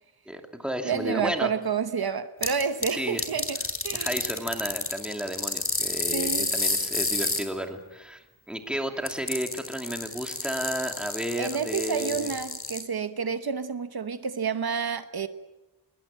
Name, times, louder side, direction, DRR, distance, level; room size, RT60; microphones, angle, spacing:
voice 1, 0.3-1.5 2.9-3.2 3.9-12.3, equal, ahead, 4 dB, 2.6 m, -32 dB
voice 2, 0.8-4.2 6.1-6.5 11.4-15.3, right 6 dB, 60° right, 11 dB, 1.1 m, -29 dB
sound 1, 2.4-2.9 3.2-7.4 9.1-12.8, left 2 dB, 30° left, 3.5 m, -29 dB
20.5 x 20.5 x 8.8 m, 1.0 s
wide cardioid pair, 115°, 42 cm